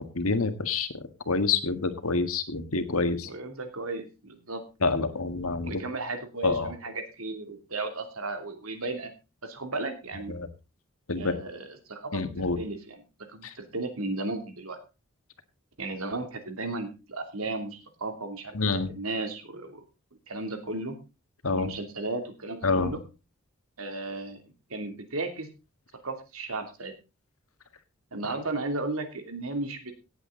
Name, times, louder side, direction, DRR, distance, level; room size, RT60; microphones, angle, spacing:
voice 1, 0.1-3.3 4.8-5.7 6.4-6.7 10.3-10.5 11.1-11.3 12.1-12.6 13.4-13.5 18.5-18.9 21.4-21.7 22.6-22.9, left 3 dB, 85° left, 9 dB, 1.8 m, -27 dB
voice 2, 3.2-4.6 5.6-9.1 9.4-10.3 11.2-12.2 12.6-13.0 13.3-14.8 15.8-18.5 18.9-19.8 20.3-21.0 21.5-23.0 23.8-24.4 24.7-25.5 26.0-26.9 28.1-29.9, right 2 dB, 80° right, 6 dB, 2.8 m, -34 dB
17.5 x 8.5 x 3.9 m, 0.29 s
head